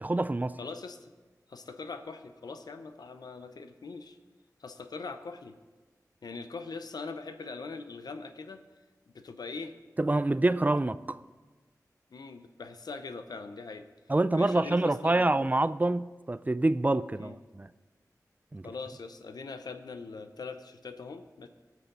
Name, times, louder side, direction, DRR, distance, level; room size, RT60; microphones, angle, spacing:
voice 1, 0.0-0.6 10.0-11.2 14.1-17.7 18.5-18.7, right 2 dB, 25° right, 0.4 m, -26 dB
voice 2, 0.6-1.1 1.5-4.2 4.6-5.6 6.2-8.6 9.1-9.7 12.1-13.9 14.3-15.3 17.2-17.4 18.6-21.5, left 4 dB, 85° left, 0.7 m, -41 dB
18.0 x 6.3 x 4.0 m
cardioid pair, 50°, 7 cm